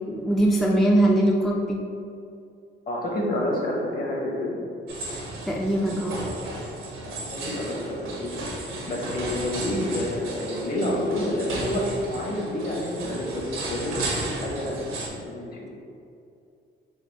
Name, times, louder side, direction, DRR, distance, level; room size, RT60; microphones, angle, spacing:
voice 1, 0.1-1.8 5.5-6.2, right 1 dB, ahead, -1 dB, 0.4 m, -21 dB
voice 2, 2.9-4.5 7.0-8.5 8.9-15.7, left 1 dB, 50° left, -2 dB, 1.2 m, -29 dB
sound 1, 4.9-15.1, right 2 dB, 85° right, 1.0 m, -34 dB
4.3 x 2.7 x 4.1 m, 2.5 s
cardioid pair, 90°, 20 cm